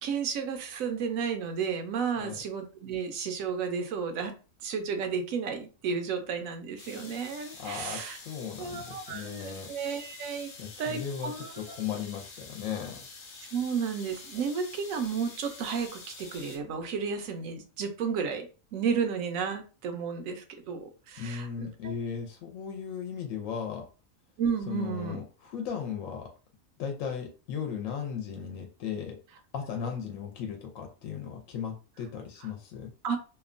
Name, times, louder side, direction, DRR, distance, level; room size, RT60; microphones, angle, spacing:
voice 1, 0.0-8.2 8.6-10.5 10.8-11.5 13.5-18.5 18.7-21.9 24.4-25.2 33.0-33.2, right 6 dB, 80° right, 6 dB, 1.0 m, -32 dB
sound 1, 6.8-16.6, left 4 dB, 55° left, 0.7 m, -47 dB
voice 2, 7.6-9.7 10.6-13.1 21.2-23.9 24.7-26.3 26.8-29.2 29.5-32.9, left 7 dB, 75° left, 3 dB, 0.9 m, -36 dB
2.8 x 2.1 x 2.5 m, 0.34 s
omnidirectional pair, 1.4 m